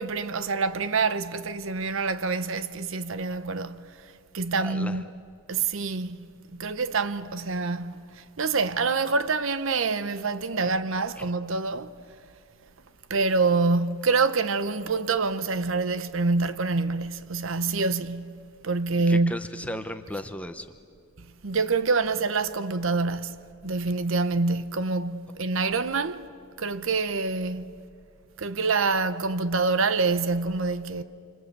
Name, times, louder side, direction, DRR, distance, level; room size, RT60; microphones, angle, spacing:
voice 1, 0.0-4.0 4.3-5.0 5.5-11.9 13.1-19.3 21.2-26.2 26.6-27.7 28.4-31.0, right 4 dB, 65° right, 0.8 m, -26 dB
voice 2, 4.6-5.0 11.2-11.3 19.1-20.7, left 1 dB, 5° left, 0.8 m, -35 dB
27.5 x 26.0 x 8.2 m
head